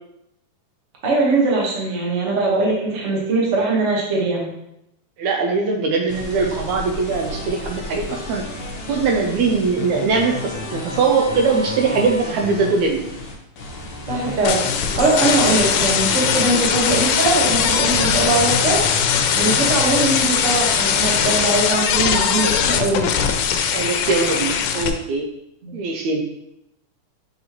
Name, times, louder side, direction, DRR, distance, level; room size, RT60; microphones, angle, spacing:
voice 1, 1.0-4.5 14.1-18.8 19.4-23.1 25.6-25.8, right 3 dB, 55° right, -3 dB, 0.8 m, -21 dB
voice 2, 5.2-8.6 8.9-13.1 23.7-25.3 25.7-26.2, right 4 dB, 80° right, 1 dB, 1.8 m, -21 dB
sound 1, 6.1-21.4, left 2 dB, 65° left, 1.3 m, -31 dB
sound 2, 14.4-24.9, left 7 dB, 80° left, 1.9 m, -20 dB
7.5 x 4.2 x 3.0 m, 0.81 s
omnidirectional pair, 3.5 m